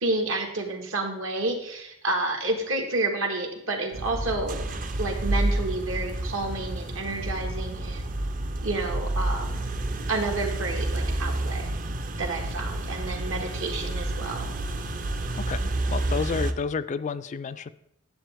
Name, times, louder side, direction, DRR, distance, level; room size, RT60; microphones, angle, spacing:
voice 1, 0.0-4.6 5.0-8.1 8.6-9.6 10.1-11.7 12.2-14.5, right 2 dB, 80° right, 3 dB, 1.6 m, -30 dB
sound 1, 3.9-16.5, right 1 dB, 40° right, 0.6 m, -29 dB
voice 2, 15.3-17.7, left 5 dB, 35° left, 13 dB, 0.3 m, -31 dB
10.5 x 7.2 x 3.5 m, 0.79 s
head